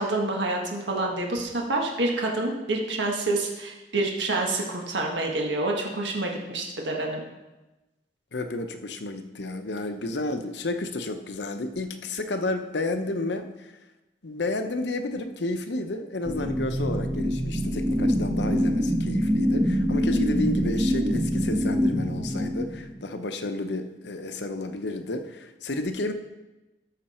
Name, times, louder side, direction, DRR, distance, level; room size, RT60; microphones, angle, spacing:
voice 1, 0.0-7.2, right 2 dB, 85° right, 0 dB, 1.5 m, -27 dB
voice 2, 8.3-13.7 14.2-26.1, left 2 dB, 70° left, 8 dB, 0.8 m, -31 dB
sound 1, 16.2-23.0, equal, 15° right, 0.7 m, -25 dB
13.5 x 6.0 x 4.4 m, 1.1 s
head